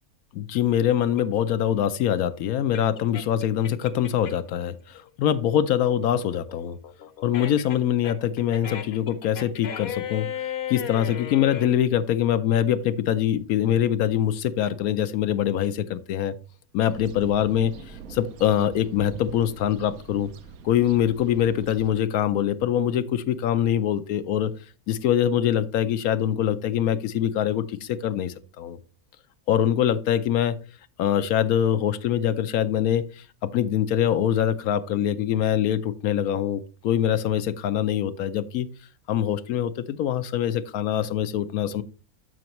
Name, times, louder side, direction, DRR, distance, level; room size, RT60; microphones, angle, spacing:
voice 1, 0.3-6.8 7.2-10.3 10.7-16.3 16.7-17.7 18.1-20.3 20.6-24.5 24.9-28.8 29.5-30.6 31.0-38.7 39.1-41.8, left 10 dB, 80° left, 12 dB, 1.1 m, -24 dB
sound 1, 1.1-4.5 4.9-11.7, left 9 dB, 55° left, 0.9 m, -36 dB
sound 2, 16.8-21.9, right 5 dB, 80° right, 1.1 m, -43 dB
12.5 x 5.2 x 3.0 m, 0.36 s
omnidirectional pair, 1.5 m